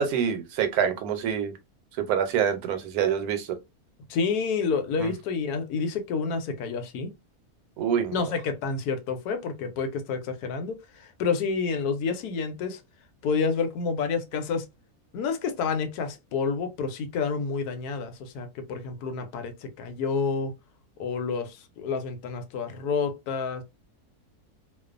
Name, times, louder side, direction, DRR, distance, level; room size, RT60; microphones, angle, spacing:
voice 1, 0.0-1.5 2.0-3.5 5.0-5.1 7.8-8.2, right 8 dB, 80° right, 1.1 m, -26 dB
voice 2, 4.1-7.1 8.1-12.8 13.2-14.6 15.1-20.5 21.0-23.6, left 5 dB, 85° left, 1.1 m, -29 dB
2.4 x 2.3 x 2.4 m
omnidirectional pair, 1.6 m